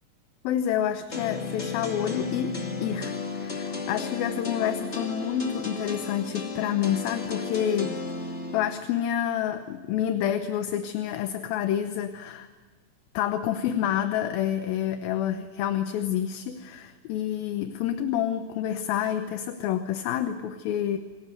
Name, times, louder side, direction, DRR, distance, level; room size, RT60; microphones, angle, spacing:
voice 1, 0.4-8.0 8.5-12.5 13.1-21.0, left 10 dB, 70° left, 9 dB, 2.5 m, -28 dB
sound 1, 1.1-8.7, left 3 dB, 25° left, 1.5 m, -34 dB
27.5 x 20.0 x 8.2 m, 1.4 s
omnidirectional pair, 4.8 m